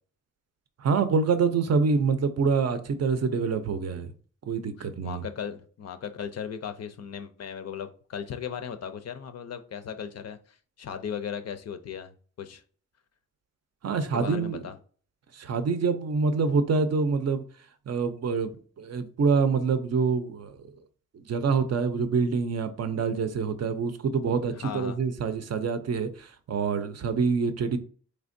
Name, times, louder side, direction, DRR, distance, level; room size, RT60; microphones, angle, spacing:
voice 1, 0.8-4.1 4.5-5.2 13.8-14.6 15.3-17.4 17.9-20.6 21.3-27.8, right 5 dB, 55° right, 0.5 m, -26 dB
voice 2, 4.8-12.6 14.0-14.8 24.5-25.0, left 7 dB, 55° left, 0.5 m, -37 dB
4.2 x 3.3 x 2.5 m
wide cardioid pair, 175°, 32 cm